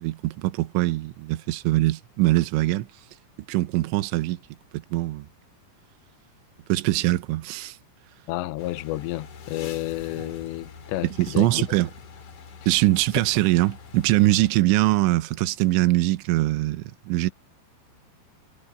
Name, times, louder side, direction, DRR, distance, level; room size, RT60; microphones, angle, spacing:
voice 1, 0.0-2.9 3.5-4.4 4.7-5.3 6.7-7.8 11.0-11.9 12.7-17.3, right 17 dB, 80° right, 3.2 m, -22 dB
voice 2, 8.3-11.5, left 17 dB, 75° left, 2.9 m, -31 dB
sound 1, 8.6-14.5, left 6 dB, 45° left, 2.9 m, -44 dB
sound 2, 8.6-8.7 10.0-13.1 14.6-14.9, right 2 dB, 10° right, 3.7 m, -51 dB
omnidirectional pair, 5.6 m